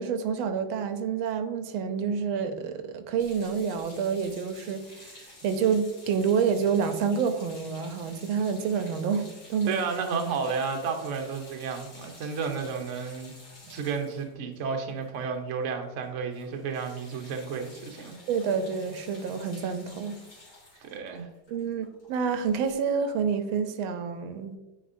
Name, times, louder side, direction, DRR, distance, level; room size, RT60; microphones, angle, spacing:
voice 1, 0.0-9.8 13.7-13.8 18.3-20.2 21.5-24.6, right 6 dB, 90° right, 8 dB, 1.5 m, -28 dB
sound 1, 3.2-15.6 15.8-16.0 16.3-22.7, left 2 dB, 45° left, 2.3 m, -51 dB
voice 2, 9.7-13.3 13.7-18.1 20.8-21.3, right 5 dB, 55° right, 4 dB, 0.8 m, -32 dB
9.0 x 4.3 x 2.6 m, 1.1 s
omnidirectional pair, 2.2 m